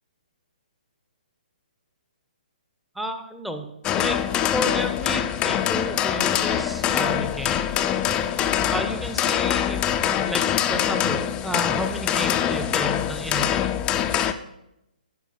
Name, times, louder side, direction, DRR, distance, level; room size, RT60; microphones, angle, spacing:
voice 1, 2.9-4.2 4.5-7.7 8.7-9.8 10.2-13.7, equal, ahead, 5 dB, 0.8 m, -32 dB
sound 1, 3.8-14.3, left 10 dB, 20° left, 0.5 m, -24 dB
10.5 x 5.0 x 5.6 m, 0.86 s
figure-of-eight pair, 135°, 5 cm